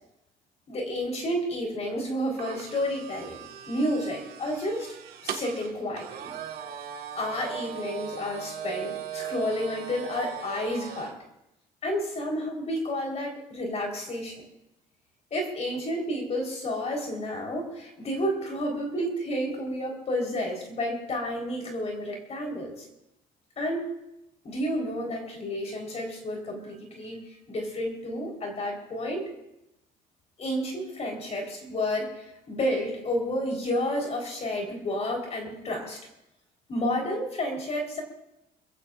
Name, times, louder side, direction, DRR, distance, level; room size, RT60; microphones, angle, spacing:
voice 1, 0.7-4.9 5.2-6.3 7.1-11.2 11.8-14.4 15.3-22.9 23.6-23.9 24.4-27.2 27.5-29.3 30.4-36.0 36.7-38.0, left 1 dB, 40° left, 1 dB, 4.3 m, -31 dB
sound 1, 2.4-11.1, right 8 dB, 65° right, 1.8 m, -38 dB
28.5 x 15.5 x 2.6 m, 0.88 s
cardioid pair, 110°, 17 cm